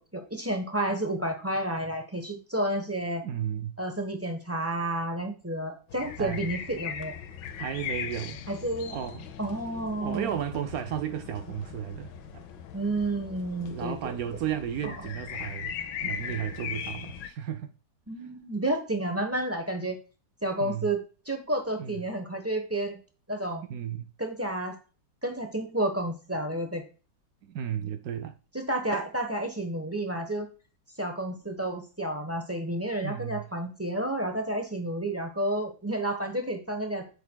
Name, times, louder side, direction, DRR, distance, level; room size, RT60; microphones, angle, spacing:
voice 1, 0.0-3.2 3.8-7.1 8.5-8.9 9.4-10.4 12.7-14.0 14.8-14.9 18.1-20.0 20.4-21.0 21.3-23.0 23.3-23.7 24.2-24.8 25.2-26.8 28.5-30.5 31.0-37.1, right 1 dB, 10° right, 0.7 m, -30 dB
voice 2, 3.2-3.7 6.2-6.5 7.6-8.4 8.9-9.3 10.0-12.5 13.6-17.7 20.6-20.9 21.8-22.0 23.7-24.1 27.4-28.4 33.0-33.4, right 9 dB, 70° right, 0.9 m, -34 dB
sound 1, 5.9-17.3, left 8 dB, 80° left, 1.4 m, -39 dB
8.3 x 6.8 x 2.3 m
omnidirectional pair, 2.0 m